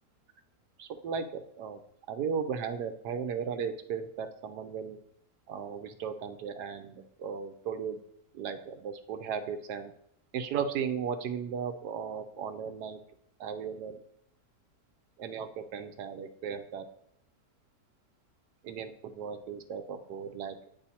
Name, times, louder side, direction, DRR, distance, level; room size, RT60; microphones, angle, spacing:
voice 1, 0.8-1.8 2.1-5.0 5.5-8.0 8.3-9.9 10.3-13.0 13.4-14.0 15.2-16.9 18.6-20.6, right 7 dB, 90° right, 8 dB, 1.2 m, -36 dB
8.3 x 3.1 x 4.2 m, 0.73 s
omnidirectional pair, 1.7 m